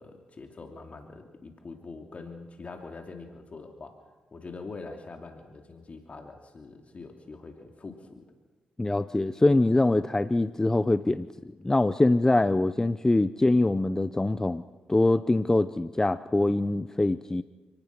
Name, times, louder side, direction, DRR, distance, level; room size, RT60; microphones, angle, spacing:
voice 1, 0.0-3.9 4.3-8.2, left 3 dB, 45° left, 4 dB, 2.8 m, -44 dB
voice 2, 8.8-11.3 11.6-14.6 14.9-17.4, left 2 dB, 20° left, 13 dB, 0.7 m, -23 dB
28.5 x 19.0 x 6.1 m, 1.3 s
supercardioid pair, 60°, 3 cm